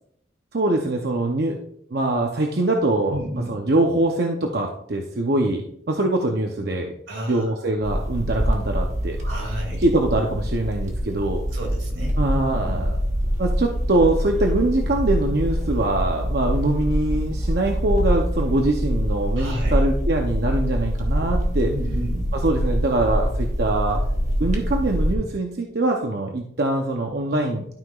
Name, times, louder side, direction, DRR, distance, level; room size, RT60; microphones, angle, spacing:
voice 1, 0.5-1.6 1.9-3.2 3.5-6.9 7.3-9.2 9.8-11.4 12.2-12.9 13.4-21.7 22.3-24.0 24.4-27.7, right 2 dB, 55° right, 2 dB, 0.7 m, -23 dB
voice 2, 3.1-3.5 7.1-7.5 9.2-9.8 11.5-12.9 19.4-19.8 21.6-22.3, right 1 dB, 85° right, 1 dB, 2.5 m, -32 dB
sound 1, 7.8-25.1, equal, 40° right, 1.3 m, -24 dB
12.0 x 5.7 x 2.4 m, 0.71 s
head